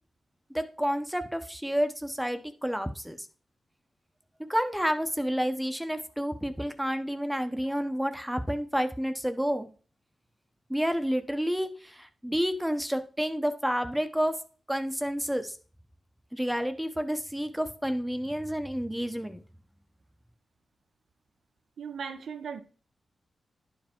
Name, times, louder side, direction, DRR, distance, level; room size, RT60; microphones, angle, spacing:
voice 1, 0.5-3.3 4.5-9.7 10.7-14.4 14.7-15.6 16.3-19.4, equal, 5° right, 0.7 m, -30 dB
voice 2, 21.8-22.6, right 6 dB, 90° right, 0.6 m, -37 dB
10.5 x 4.9 x 3.6 m
cardioid pair, 85°, 0 cm